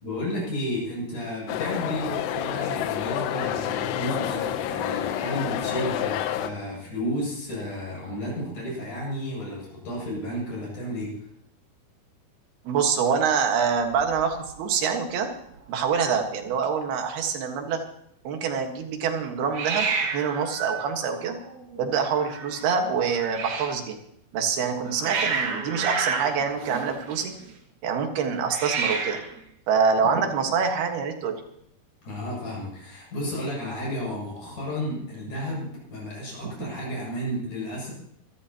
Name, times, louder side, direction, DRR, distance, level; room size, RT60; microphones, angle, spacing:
voice 1, 0.0-11.2 32.0-37.9, equal, 50° left, -4 dB, 9.0 m, -32 dB
sound 1, 1.5-6.5, left 11 dB, 85° left, 3.0 m, -29 dB
voice 2, 12.7-15.3 15.7-17.8 18.3-19.9 20.1-21.4 21.8-24.0 24.3-27.3 27.8-29.2 29.7-31.4, right 6 dB, 70° right, 4 dB, 3.5 m, -25 dB
Hiss, 13.3-14.6 14.8-15.3 15.5-15.6 15.8-16.5 19.5-23.8 24.6-27.5 28.4-29.4, right 5 dB, 55° right, 3.0 m, -31 dB
25.5 x 13.5 x 3.0 m, 0.74 s
omnidirectional pair, 4.7 m